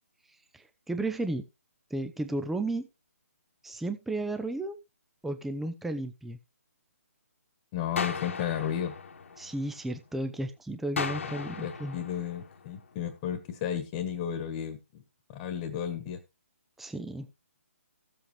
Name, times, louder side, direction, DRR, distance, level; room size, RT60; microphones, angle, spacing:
voice 1, 0.5-1.5 1.9-2.9 3.6-4.8 5.2-6.4 9.4-12.0 16.8-17.3, right 2 dB, 5° right, 8 dB, 0.5 m, -33 dB
voice 2, 7.7-8.9 11.6-15.0 15.3-16.2, left 9 dB, 25° left, 8 dB, 1.4 m, -33 dB
sound 1, 8.0-10.0 11.0-13.0, left 5 dB, 60° left, 1.3 m, -37 dB
15.0 x 7.7 x 3.2 m, 0.25 s
figure-of-eight pair, 145°, 8 cm